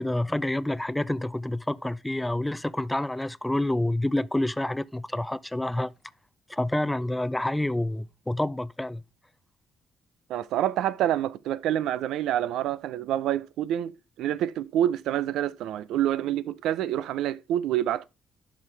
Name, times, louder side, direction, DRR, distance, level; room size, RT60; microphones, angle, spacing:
voice 1, 0.0-5.9 6.5-9.0, left 1 dB, 10° left, 0.4 m, -28 dB
voice 2, 10.3-13.9 14.2-18.0, right 11 dB, 80° right, 0.5 m, -27 dB
10.5 x 5.8 x 3.3 m
supercardioid pair, 70°, 0 cm